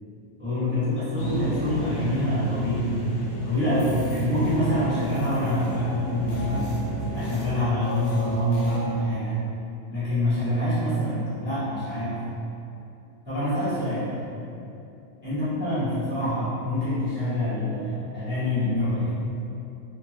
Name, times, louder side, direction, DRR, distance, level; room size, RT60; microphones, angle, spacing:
voice 1, 0.4-2.9 3.4-6.8 7.1-9.4 9.9-12.2 13.2-14.2 15.2-19.1, left 1 dB, 10° right, -15 dB, 0.9 m, -26 dB
sound 1, 1.2-7.4, equal, 85° left, 1.1 m, -31 dB
sound 2, 3.7-8.8, right 1 dB, 65° left, 0.7 m, -38 dB
2.7 x 2.4 x 3.1 m, 2.7 s
omnidirectional pair, 1.3 m